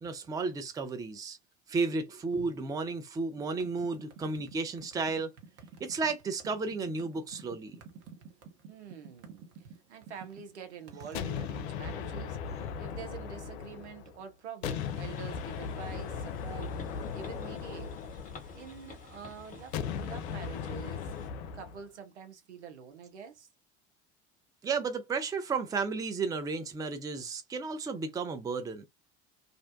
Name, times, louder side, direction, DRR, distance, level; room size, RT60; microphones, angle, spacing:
voice 1, 0.0-1.4 1.7-5.3 5.8-7.8 12.5-12.6 24.6-28.9, right 4 dB, 10° right, 0.4 m, -33 dB
sound 1, 3.4-11.5, right 5 dB, 45° right, 0.9 m, -51 dB
voice 2, 8.7-9.5 9.9-17.9 18.5-21.1 21.5-23.5, right 7 dB, 80° right, 0.7 m, -46 dB
sound 2, 11.1-14.2 14.6-18.9 19.7-21.8, left 7 dB, 65° left, 0.5 m, -37 dB
sound 3, 14.8-21.3, left 4 dB, 25° left, 0.9 m, -49 dB
2.5 x 2.1 x 2.5 m
figure-of-eight pair, 65°, 34 cm